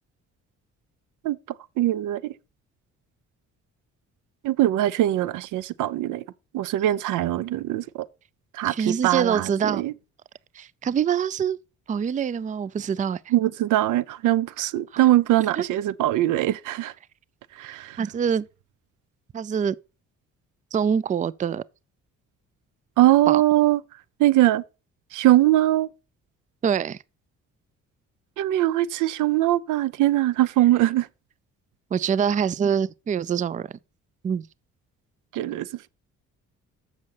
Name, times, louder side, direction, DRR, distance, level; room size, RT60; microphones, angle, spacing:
voice 1, 1.8-2.3 4.4-6.2 6.5-8.1 8.5-9.9 13.3-16.9 17.6-18.0 23.0-23.8 24.2-24.6 25.1-25.9 28.4-31.1 35.3-35.7, right 14 dB, 85° right, 0.6 m, -21 dB
voice 2, 8.6-9.8 10.5-11.6 11.9-13.2 14.9-15.1 15.6-15.7 18.0-18.5 19.3-19.8 20.7-21.6 23.3-23.4 26.6-27.0 31.9-33.7 34.2-34.5, right 7 dB, 25° right, 0.4 m, -25 dB
7.7 x 6.3 x 5.6 m
cardioid pair, 90°, 30 cm